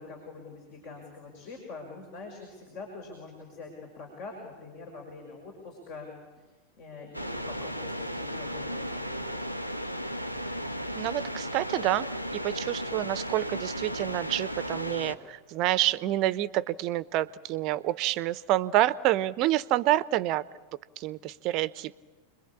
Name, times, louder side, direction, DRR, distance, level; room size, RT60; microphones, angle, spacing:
voice 1, 0.0-6.1 6.3-6.5 6.8-9.4, left 3 dB, 45° left, 2 dB, 5.7 m, -44 dB
sound 1, 7.1-15.2, equal, 90° left, 1.4 m, -35 dB
voice 2, 10.9-12.1 12.3-20.4 21.0-21.9, right 15 dB, 40° right, 19 dB, 0.9 m, -28 dB
29.5 x 22.0 x 8.6 m, 1.2 s
figure-of-eight pair, 90°, 0 cm